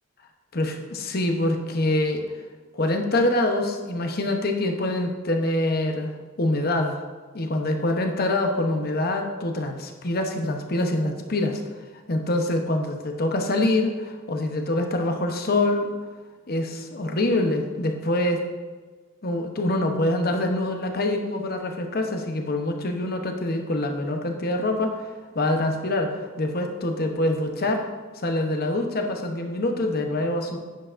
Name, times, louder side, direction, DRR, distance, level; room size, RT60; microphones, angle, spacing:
voice 1, 0.6-2.2 2.7-7.0 7.3-11.6 12.1-15.9 16.5-18.4 19.2-25.1 25.3-27.9 28.2-30.6, left 1 dB, 50° left, 4 dB, 0.9 m, -25 dB
10.5 x 8.0 x 2.6 m, 1.4 s
head